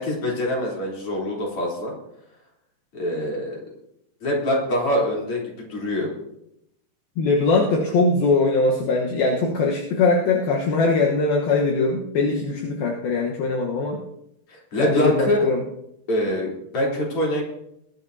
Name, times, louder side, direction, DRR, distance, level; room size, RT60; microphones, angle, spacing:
voice 1, 0.0-1.9 2.9-3.6 4.2-6.1 14.5-15.5 16.1-17.4, left 1 dB, 35° left, -3 dB, 4.2 m, -24 dB
voice 2, 7.2-14.0 14.8-15.6, left 3 dB, 70° left, -1 dB, 2.9 m, -21 dB
21.0 x 12.0 x 2.8 m, 0.78 s
omnidirectional pair, 4.6 m